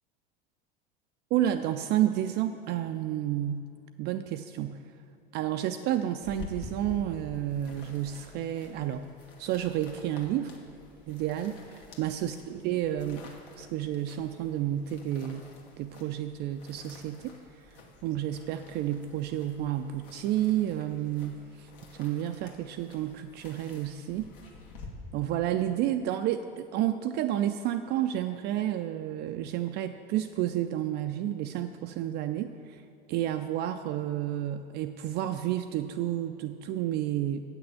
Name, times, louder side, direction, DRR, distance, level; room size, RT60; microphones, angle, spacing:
voice 1, 1.3-3.7 4.0-4.8 5.3-9.1 9.4-10.6 11.1-13.3 13.5-15.5 15.8-24.3 25.1-37.4, right 12 dB, 35° right, 8 dB, 0.4 m, -31 dB
sound 1, 6.2-24.9, left 3 dB, 65° left, 1.6 m, -50 dB
8.5 x 6.2 x 7.4 m, 2.6 s
figure-of-eight pair, 75°, 29 cm